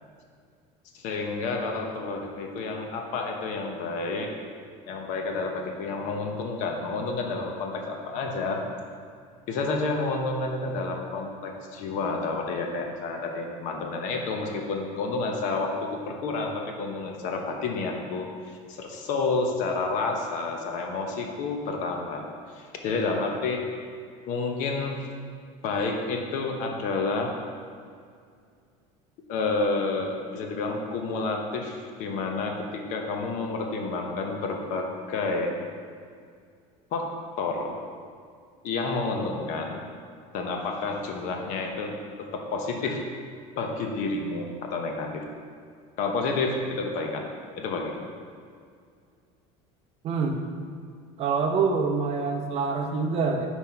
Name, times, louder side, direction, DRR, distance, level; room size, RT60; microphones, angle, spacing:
voice 1, 0.9-4.3 4.9-8.6 9.5-22.2 22.5-23.6 24.3-25.1 25.6-27.3 29.3-35.5 36.9-37.1 37.4-37.8 38.6-39.8 40.3-41.9 42.2-43.0 43.6-45.3 46.0-47.3 47.6-48.1, left 3 dB, 55° left, 2 dB, 0.8 m, -30 dB
voice 2, 50.0-50.4 51.2-53.5, right 4 dB, 40° right, 3 dB, 0.6 m, -25 dB
5.6 x 4.5 x 4.4 m, 2.2 s
cardioid pair, 145°, 15 cm